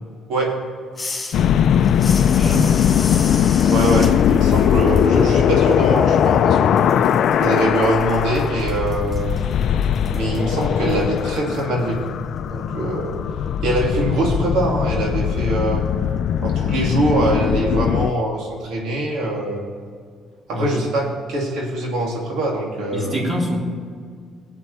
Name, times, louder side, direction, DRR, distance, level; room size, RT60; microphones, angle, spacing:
sound 1, 0.9-6.5 6.8-11.6, left 3 dB, 25° left, 2.5 m, -35 dB
sound 2, 1.3-18.1, left 9 dB, 65° left, 0.4 m, -19 dB
voice 1, 2.3-2.7 20.5-20.7 22.9-23.6, equal, 30° right, -3 dB, 3.8 m, -25 dB
voice 2, 3.7-6.7 7.4-9.4 10.1-12.0 12.5-13.2 13.6-15.9 16.4-19.7 20.5-23.2, right 1 dB, 80° right, -2 dB, 2.7 m, -23 dB
21.5 x 8.2 x 3.4 m, 2.1 s
cardioid pair, 90°, 0 cm